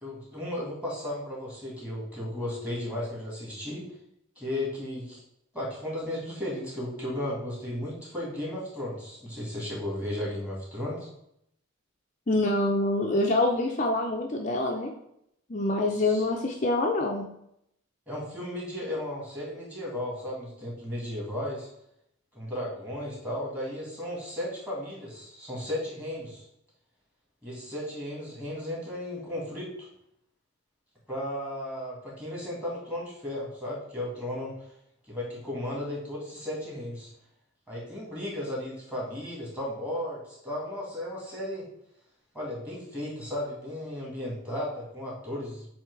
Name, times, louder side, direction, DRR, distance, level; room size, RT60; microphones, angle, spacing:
voice 1, 0.0-3.9 4.4-5.2 5.5-11.1 15.9-16.2 18.1-21.7 22.3-26.5 27.4-29.9 31.1-34.7 35.1-37.1 37.7-41.7 42.3-45.7, left 1 dB, 5° right, -5 dB, 2.0 m, -35 dB
voice 2, 12.3-14.9 15.5-17.2, left 2 dB, 35° left, 0 dB, 0.5 m, -26 dB
7.6 x 2.8 x 4.7 m, 0.76 s
head